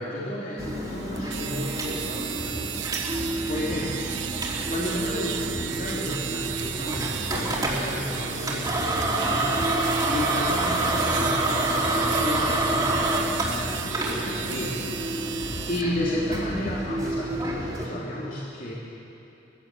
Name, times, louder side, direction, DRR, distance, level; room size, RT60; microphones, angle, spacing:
voice 1, 0.0-2.8 3.5-4.1 4.7-9.6 10.1-14.8 15.1-15.3 15.7-18.7, left 1 dB, 50° left, -6 dB, 3.2 m, -33 dB
sound 1, 0.6-17.9, right 1 dB, 20° right, 3.4 m, -28 dB
sound 2, 1.2-15.9, right 10 dB, 85° right, 0.8 m, -34 dB
23.0 x 16.0 x 7.9 m, 2.9 s
head